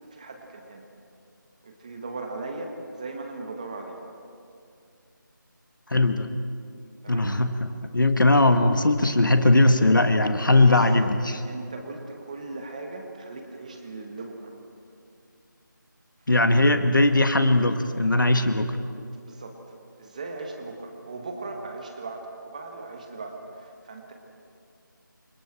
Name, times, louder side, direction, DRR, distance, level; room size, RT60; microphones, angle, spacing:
voice 1, 0.1-0.8 1.6-4.0 7.0-7.3 10.6-11.1 11.4-14.6 19.2-19.6 20.0-24.1, right 3 dB, 20° right, 3 dB, 1.6 m, -38 dB
voice 2, 5.9-6.3 7.1-11.4 16.3-18.8, left 2 dB, 70° left, 8 dB, 1.8 m, -20 dB
29.5 x 26.0 x 4.5 m, 2.4 s
figure-of-eight pair, 170°, 11 cm